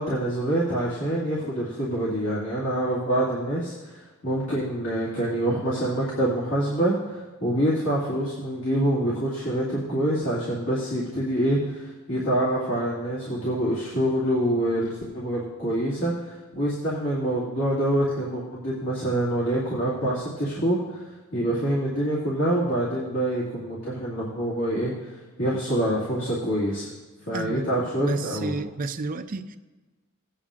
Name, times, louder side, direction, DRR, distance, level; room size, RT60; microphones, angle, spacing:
voice 1, 0.0-21.0 21.3-26.9 27.3-28.6, right 1 dB, 60° left, -7 dB, 2.2 m, -26 dB
voice 2, 27.3-27.6 28.0-29.6, right 3 dB, 40° right, 9 dB, 0.5 m, -31 dB
18.0 x 8.8 x 2.5 m, 1.2 s
head